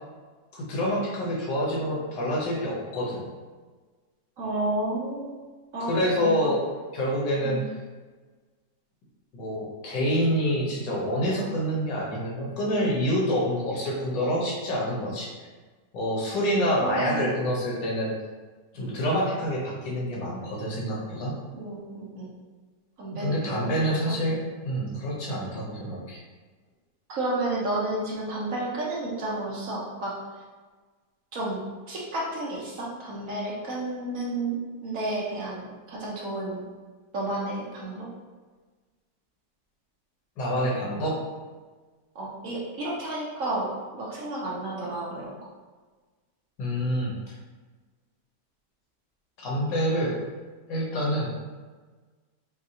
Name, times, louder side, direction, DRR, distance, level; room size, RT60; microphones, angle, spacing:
voice 1, 0.5-3.2 5.8-6.6 6.9-7.6 9.3-15.3 15.9-18.1 18.7-21.3 23.1-26.2 40.4-41.2 46.6-47.3 49.4-50.2 50.7-51.3, equal, 85° left, -4 dB, 1.7 m, -27 dB
voice 2, 4.4-5.4 5.7-6.5 7.4-7.6 16.8-17.3 21.5-22.3 23.0-24.2 27.1-30.1 31.3-36.7 37.1-38.1 42.1-45.5, right 2 dB, 55° right, -5 dB, 1.2 m, -31 dB
6.5 x 2.3 x 2.8 m, 1.4 s
omnidirectional pair, 1.9 m